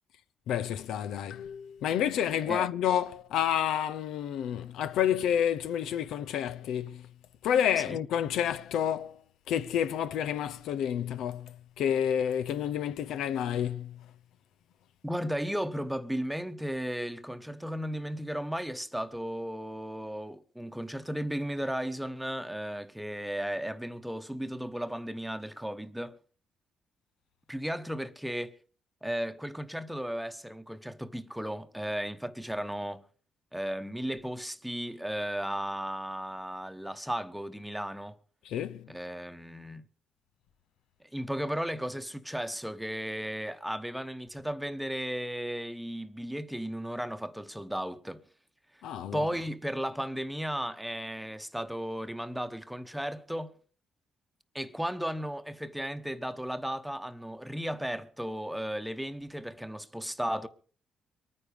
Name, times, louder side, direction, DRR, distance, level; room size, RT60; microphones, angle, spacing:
voice 1, 0.5-7.1 7.4-9.2 9.5-14.0 38.4-38.9 48.8-49.3, left 9 dB, 85° left, 0.7 m, -29 dB
voice 2, 15.0-26.2 27.5-28.5 29.0-33.0 33.5-38.2 38.9-39.8 41.0-48.2 49.1-53.5 54.5-60.5, equal, 5° right, 1.0 m, -35 dB
23.0 x 9.7 x 5.1 m
cardioid pair, 90°, 0 cm